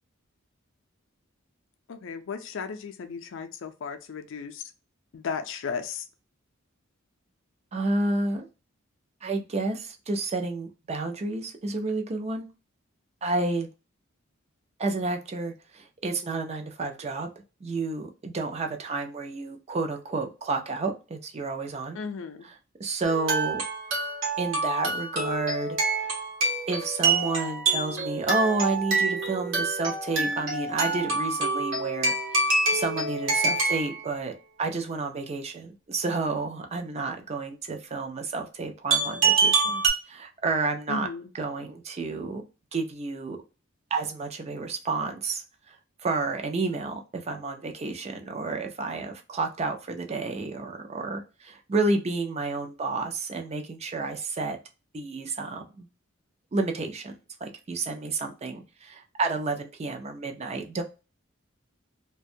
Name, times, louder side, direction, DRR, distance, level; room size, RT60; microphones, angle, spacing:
voice 1, 1.9-4.6 5.1-6.1 21.9-22.4 40.9-41.3, left 5 dB, 65° left, 0.4 m, -35 dB
voice 2, 7.7-8.5 9.2-12.5 13.2-13.7 14.8-17.3 17.6-22.0 22.8-23.6 24.4-26.1 26.7-34.3 34.6-41.1 41.3-42.4 42.7-43.4 43.9-45.4 46.0-54.6 54.9-55.9 56.5-57.1 57.4-60.8, right 3 dB, 30° right, 0.4 m, -30 dB
sound 1, 23.0-34.0 38.9-39.9, right 3 dB, 70° right, 0.9 m, -26 dB
2.5 x 2.2 x 2.6 m
head